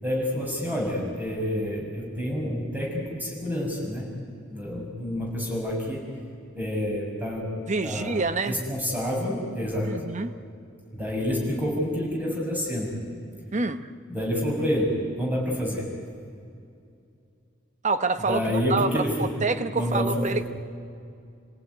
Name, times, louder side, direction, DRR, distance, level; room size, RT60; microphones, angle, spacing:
voice 1, 0.0-4.1 4.5-6.1 6.5-7.5 7.8-9.9 10.9-13.0 14.1-15.9 18.3-19.3 19.7-20.4, equal, 10° right, -3 dB, 6.8 m, -28 dB
voice 2, 7.7-8.6 9.8-10.3 13.5-13.9 17.8-20.4, right 3 dB, 40° right, 10 dB, 1.0 m, -27 dB
30.0 x 17.5 x 9.5 m, 2.5 s
head